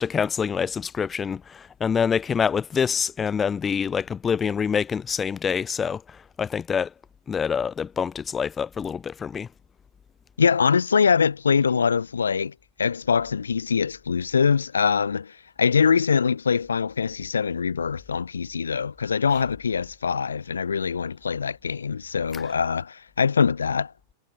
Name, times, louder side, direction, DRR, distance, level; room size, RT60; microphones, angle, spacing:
voice 1, 0.0-6.0 6.4-6.9 7.3-9.5, left 6 dB, 20° left, 0.7 m, -26 dB
voice 2, 10.4-12.5 12.8-23.9, left 6 dB, 70° left, 0.5 m, -23 dB
figure-of-eight pair, 90°, 0 cm